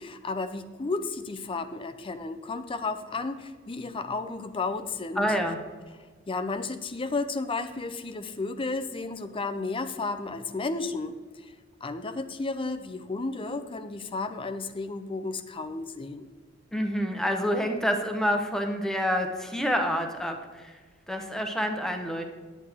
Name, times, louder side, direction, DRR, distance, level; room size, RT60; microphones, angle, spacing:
voice 1, 0.0-5.4 6.3-11.5 11.8-16.2, left 3 dB, 30° left, 10 dB, 0.5 m, -33 dB
voice 2, 5.2-5.6 16.7-20.8 21.1-22.2, equal, 5° left, 4 dB, 1.0 m, -28 dB
10.5 x 8.6 x 3.5 m, 1.5 s
head